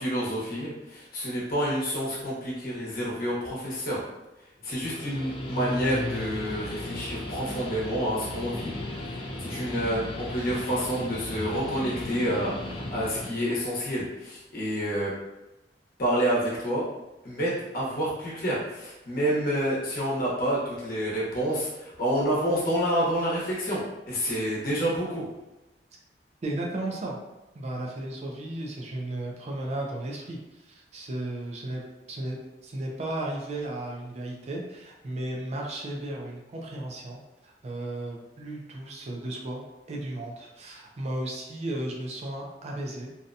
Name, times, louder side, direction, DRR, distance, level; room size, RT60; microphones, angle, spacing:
voice 1, 0.0-4.0 4.6-8.7 9.4-15.1 16.0-16.8 17.2-25.2, equal, 55° left, -6 dB, 0.9 m, -28 dB
Guitar, 4.6-13.3, left 1 dB, 30° left, 0.4 m, -35 dB
voice 2, 26.4-27.2 27.5-31.8 32.1-43.1, right 1 dB, 40° right, -1 dB, 0.4 m, -35 dB
2.7 x 2.2 x 2.5 m, 1.0 s
head